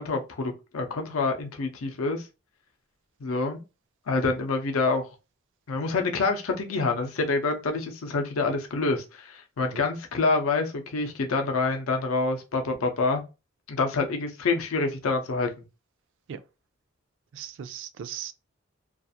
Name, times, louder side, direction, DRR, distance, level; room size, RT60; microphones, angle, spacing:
voice 1, 0.0-2.3 3.2-3.6 4.1-5.1 5.7-13.2 13.7-15.5, left 3 dB, 85° left, 0.5 m, -27 dB
voice 2, 17.3-18.3, right 9 dB, 65° right, 0.3 m, -38 dB
2.4 x 2.4 x 2.6 m
head